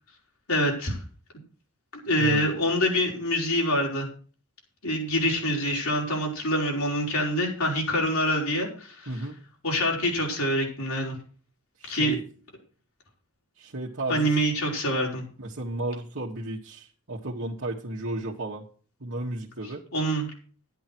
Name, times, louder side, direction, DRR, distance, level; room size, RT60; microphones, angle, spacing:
voice 1, 0.5-1.0 2.1-4.1 4.8-9.1 9.6-11.2 11.8-12.1 14.1-15.2 19.9-20.3, equal, 80° left, -1 dB, 5.0 m, -25 dB
voice 2, 9.1-9.4 11.8-12.2 13.6-14.4 15.4-18.6 19.0-19.8, right 2 dB, 65° right, -4 dB, 1.6 m, -33 dB
12.0 x 10.5 x 4.5 m, 0.41 s
head